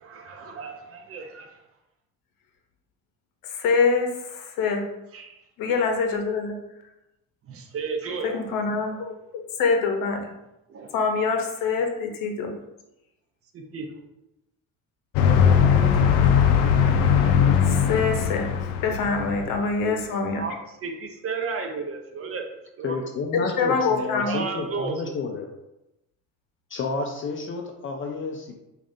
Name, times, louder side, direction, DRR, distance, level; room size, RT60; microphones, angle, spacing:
voice 1, 0.0-1.5 5.1-5.4 7.5-8.4 10.7-10.9 13.5-13.9 20.3-23.0 24.3-25.2, right 4 dB, 40° right, 4 dB, 0.6 m, -33 dB
voice 2, 3.4-4.9 5.6-6.6 8.2-9.1 9.6-10.3 10.9-12.5 15.9-16.0 17.6-18.5 18.8-20.5 23.4-24.4, left 4 dB, 65° left, 4 dB, 0.8 m, -25 dB
sound 1, 15.1-19.8, left 7 dB, 90° left, 0.5 m, -20 dB
voice 3, 22.8-25.5 26.7-28.6, left 4 dB, 35° left, 2 dB, 0.4 m, -30 dB
4.8 x 2.5 x 2.6 m, 0.91 s
cardioid pair, 105°, 36 cm